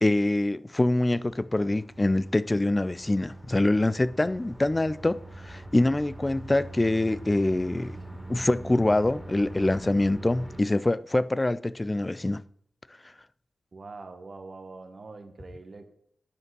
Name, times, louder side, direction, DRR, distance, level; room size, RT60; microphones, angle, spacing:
voice 1, 0.0-8.0 8.3-12.4, left 2 dB, 20° left, 0.3 m, -25 dB
sound 1, 0.9-10.6, right 1 dB, 5° left, 2.3 m, -43 dB
voice 2, 13.7-15.9, right 3 dB, 50° right, 1.2 m, -44 dB
10.0 x 5.1 x 6.0 m
wide cardioid pair, 110°, 0 cm